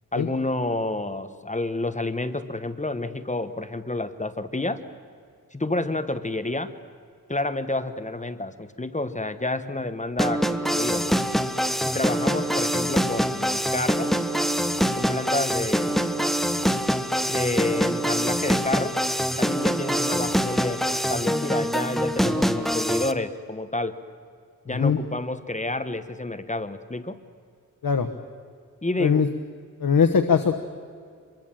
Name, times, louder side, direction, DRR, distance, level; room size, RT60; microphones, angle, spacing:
voice 1, 0.1-4.8 5.5-6.7 7.3-11.0 11.8-14.1 15.0-16.2 17.3-19.0 19.4-23.9 24.6-27.2 28.8-29.3, left 2 dB, 20° left, 10 dB, 1.2 m, -29 dB
sound 1, 10.2-23.1, equal, ahead, 1.1 m, -24 dB
voice 2, 29.8-30.5, left 6 dB, 85° left, 8 dB, 1.1 m, -20 dB
26.5 x 22.5 x 7.6 m, 2.2 s
wide cardioid pair, 95°, 33 cm